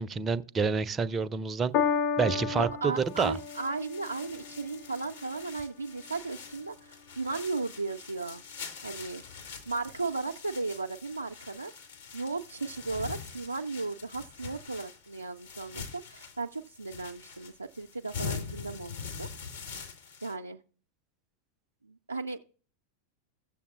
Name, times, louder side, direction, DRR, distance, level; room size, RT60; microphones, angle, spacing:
voice 1, 0.0-1.7 2.2-3.3, right 5 dB, 20° right, 0.4 m, -28 dB
Piano, 1.7-8.3 9.1-9.2, left 6 dB, 40° left, 0.6 m, -35 dB
voice 2, 2.5-8.4 8.8-9.2 9.7-11.7 12.1-19.3 20.2-20.6 21.8-22.4, right 3 dB, 80° right, 0.4 m, -35 dB
sound 1, 3.0-20.4, left 5 dB, 65° left, 1.3 m, -44 dB
16.0 x 6.9 x 2.4 m
figure-of-eight pair, 90°, 0 cm